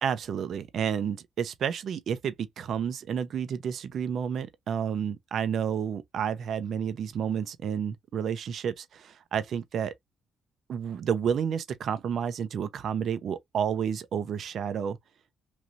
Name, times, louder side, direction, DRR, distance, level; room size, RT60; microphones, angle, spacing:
voice 1, 0.0-9.9 10.7-15.0, right 8 dB, 65° right, 0.5 m, -30 dB
3.1 x 2.6 x 2.5 m
cardioid pair, 90°, 0 cm